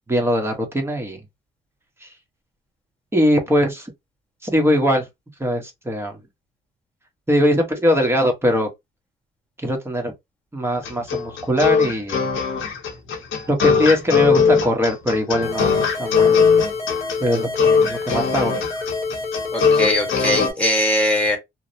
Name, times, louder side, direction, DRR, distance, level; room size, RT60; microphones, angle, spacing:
voice 1, 0.1-1.2 2.0-2.1 3.1-3.9 4.4-5.0 5.4-6.2 7.3-8.7 9.6-10.1 10.5-12.3 13.5-16.4 17.2-18.6, equal, 10° right, 0.9 m, -21 dB
sound 1, 10.9-20.5, left 6 dB, 80° left, 0.8 m, -19 dB
sound 2, 15.4-20.5, left 3 dB, 30° left, 1.0 m, -29 dB
voice 2, 19.5-21.4, left 1 dB, 5° left, 1.2 m, -20 dB
2.7 x 2.0 x 2.6 m
cardioid pair, 90°, 20 cm